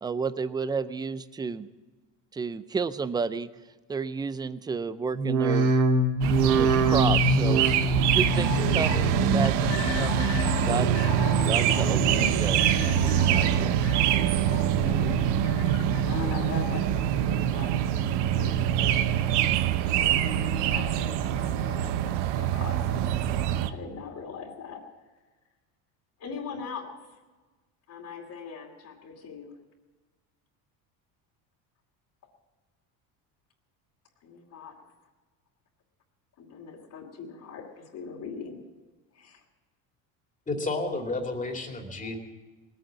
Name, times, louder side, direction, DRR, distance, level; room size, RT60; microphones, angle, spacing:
voice 1, 0.0-1.7 2.3-3.5 3.9-5.8 6.4-11.1 11.4-12.8 13.3-13.7, right 5 dB, 10° right, 14 dB, 0.4 m, -32 dB
sound 1, 5.1-10.5 10.8-11.4 11.8-12.5 12.9-13.6 14.0-14.7 15.2-15.7 16.3-16.4, right 2 dB, 90° right, 2.0 m, -27 dB
sound 2, 6.2-23.7, right 11 dB, 70° right, 0.9 m, -25 dB
sound 3, 8.3-17.6 18.0-18.1, left 9 dB, 90° left, 1.3 m, -34 dB
voice 2, 14.2-15.2 16.0-19.0 19.8-24.8 26.2-26.9 27.9-29.5 34.2-34.8 36.4-38.6 39.1-39.4 42.0-42.1, left 5 dB, 45° left, -3 dB, 2.7 m, -41 dB
voice 3, 40.5-42.2, left 2 dB, 20° left, 2 dB, 2.6 m, -31 dB
19.5 x 9.2 x 7.4 m, 1.3 s
cardioid pair, 120°, 42 cm